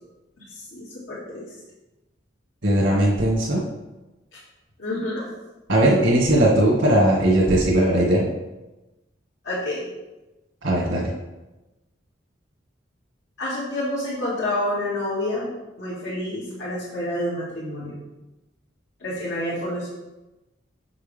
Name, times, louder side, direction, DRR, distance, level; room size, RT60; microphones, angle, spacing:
voice 1, 0.4-1.5 4.8-5.3 9.4-9.8 13.4-18.0 19.0-19.9, left 1 dB, 70° left, -10 dB, 2.4 m, -28 dB
voice 2, 2.6-3.6 5.7-8.3 10.6-11.1, right 1 dB, 80° right, -8 dB, 2.3 m, -19 dB
7.6 x 6.7 x 3.6 m, 1.1 s
head